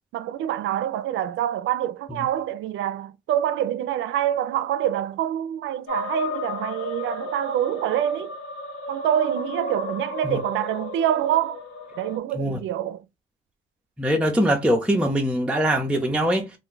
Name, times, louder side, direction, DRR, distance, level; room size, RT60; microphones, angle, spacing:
voice 1, 0.1-8.3 8.9-11.6 12.0-13.0, right 11 dB, 75° right, 0.4 m, -26 dB
Alien Music, 5.9-12.2, left 3 dB, 75° left, 0.8 m, -34 dB
voice 2, 14.0-16.5, equal, 5° right, 0.5 m, -22 dB
2.5 x 2.2 x 3.8 m
cardioid pair, 90°, 20 cm